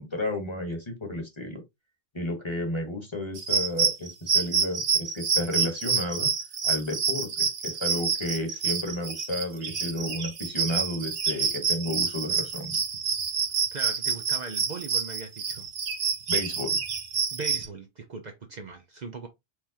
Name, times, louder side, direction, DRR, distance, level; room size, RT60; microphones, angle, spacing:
voice 1, 0.0-1.6 2.1-6.3 6.6-12.8 16.3-16.8, left 1 dB, 30° left, 1.4 m, -32 dB
sound 1, 3.4-17.7, right 5 dB, 70° right, 1.2 m, -27 dB
voice 2, 13.7-15.7 17.3-19.3, right 4 dB, 50° right, 0.7 m, -39 dB
4.7 x 3.5 x 2.8 m
omnidirectional pair, 1.0 m